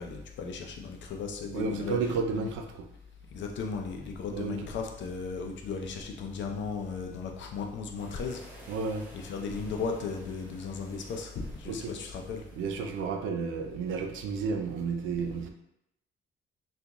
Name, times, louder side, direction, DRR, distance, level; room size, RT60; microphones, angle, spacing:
voice 1, 0.0-2.5 3.3-8.4 9.1-12.4, left 5 dB, 65° left, 3 dB, 0.6 m, -36 dB
voice 2, 1.5-2.9 4.3-4.7 8.7-9.0 11.7-11.9 12.6-15.5, right 5 dB, 80° right, 5 dB, 0.5 m, -32 dB
sound 1, 8.0-13.0, equal, 10° right, 1.5 m, -51 dB
3.5 x 2.5 x 2.9 m, 0.80 s
cardioid pair, 90°, 20 cm